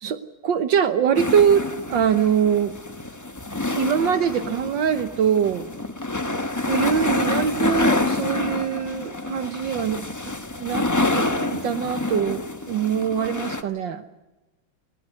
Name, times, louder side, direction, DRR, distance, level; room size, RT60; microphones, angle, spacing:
voice 1, 0.0-2.7 3.7-5.7 6.7-10.9 11.1-11.2 11.5-14.0, right 8 dB, 70° right, 11 dB, 1.6 m, -23 dB
sound 1, 1.1-13.6, left 2 dB, 15° left, 0.6 m, -27 dB
21.0 x 19.0 x 9.5 m, 1.1 s
omnidirectional pair, 2.2 m